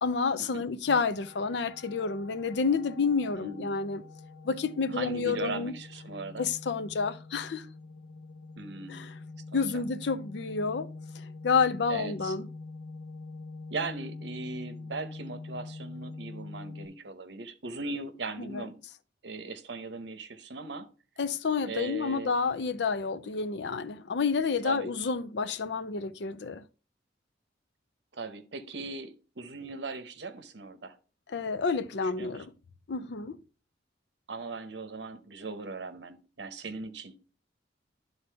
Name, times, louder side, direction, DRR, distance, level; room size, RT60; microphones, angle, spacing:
voice 1, 0.0-4.0 4.4-5.7 6.4-7.7 8.9-9.1 9.5-10.9 11.4-12.5 18.5-18.7 21.2-26.6 31.3-32.5 32.9-33.4, left 5 dB, 65° left, 0.5 m, -29 dB
sound 1, 0.9-16.9, left 3 dB, 80° left, 1.1 m, -45 dB
voice 2, 3.4-3.8 4.9-6.5 8.6-9.1 9.5-9.8 11.9-12.3 13.7-18.8 19.2-20.9 21.6-22.3 24.6-24.9 28.1-31.0 32.2-32.4 34.3-37.2, right 3 dB, 70° right, 0.8 m, -39 dB
11.0 x 4.0 x 3.4 m
head